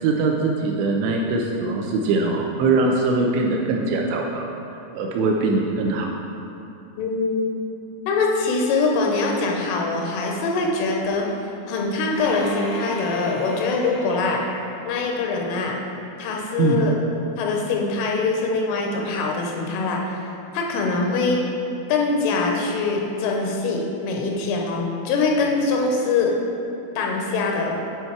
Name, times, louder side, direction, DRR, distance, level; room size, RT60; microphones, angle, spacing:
voice 1, 0.0-4.5 4.9-6.1 16.6-16.8, right 3 dB, 80° right, 1 dB, 2.7 m, -22 dB
voice 2, 7.0-7.5 8.1-14.4 14.8-15.8 16.2-17.0 17.4-20.2 20.5-21.4 21.9-26.4 27.0-27.8, left 3 dB, 90° left, 0 dB, 3.3 m, -23 dB
sound 1, 12.1-15.8, left 1 dB, 60° left, 3.5 m, -37 dB
9.6 x 4.3 x 4.5 m, 2.8 s
omnidirectional pair, 5.6 m